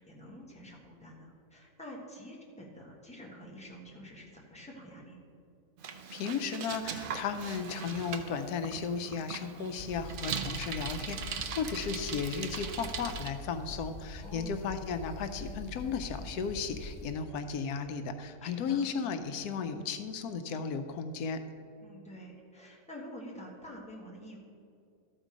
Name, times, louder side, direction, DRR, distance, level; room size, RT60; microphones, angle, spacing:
voice 1, 0.0-5.2 14.2-14.6 18.4-18.9 21.8-24.4, equal, 5° left, -3 dB, 1.4 m, -48 dB
Bicycle, 5.8-13.3, right 6 dB, 75° right, 0.4 m, -40 dB
voice 2, 6.1-21.4, left 5 dB, 90° left, 8 dB, 1.1 m, -35 dB
sound 1, 9.8-17.1, left 2 dB, 55° left, 1.4 m, -44 dB
13.0 x 4.5 x 5.1 m, 2.5 s
omnidirectional pair, 1.6 m